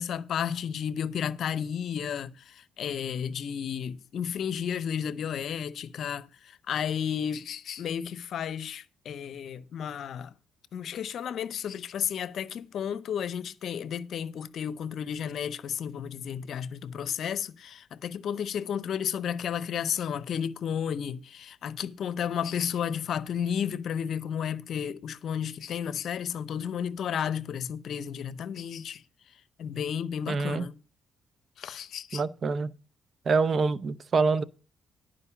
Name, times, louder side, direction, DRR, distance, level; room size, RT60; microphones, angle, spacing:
voice 1, 0.0-10.3 10.7-29.0 29.6-30.8 31.6-32.2, left 8 dB, 65° left, 0.6 m, -32 dB
voice 2, 30.3-30.6 32.1-32.7 33.3-34.4, right 4 dB, 45° right, 0.6 m, -25 dB
11.0 x 5.1 x 7.0 m
cardioid pair, 90°, 0 cm